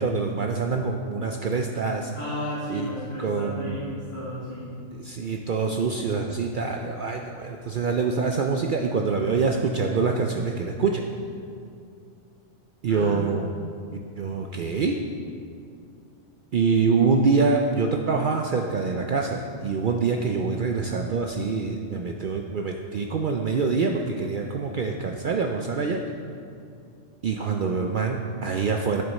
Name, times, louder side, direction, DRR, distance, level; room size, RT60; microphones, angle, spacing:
voice 1, 0.0-2.1 2.7-2.9 3.2-3.9 4.9-11.0 12.8-13.5 14.2-15.0 16.5-26.0 27.2-29.0, right 4 dB, 65° right, 2 dB, 0.5 m, -25 dB
voice 2, 2.1-4.7 12.9-13.4, equal, 25° left, -8 dB, 1.5 m, -34 dB
10.0 x 6.8 x 4.1 m, 2.4 s
omnidirectional pair, 1.4 m